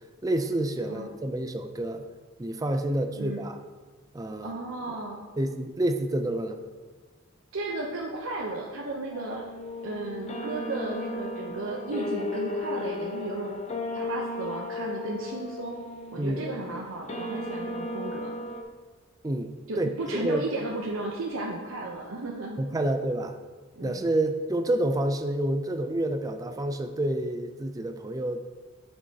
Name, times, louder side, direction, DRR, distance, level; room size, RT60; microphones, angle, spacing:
voice 1, 0.2-2.0 2.4-3.6 4.1-4.5 5.4-6.6 16.2-16.4 19.2-19.5 19.8-19.9 20.2-20.4 22.6-23.4 23.8-28.4, right 1 dB, 15° right, 7 dB, 0.4 m, -28 dB
voice 2, 4.4-5.2 7.5-9.5 9.8-13.6 13.9-15.8 16.1-18.3 19.7-23.0 23.7-24.1, right 2 dB, 70° right, -2 dB, 0.7 m, -34 dB
sound 1, 9.1-18.6, left 2 dB, 30° left, 0.7 m, -35 dB
7.6 x 6.2 x 2.8 m, 1.4 s
head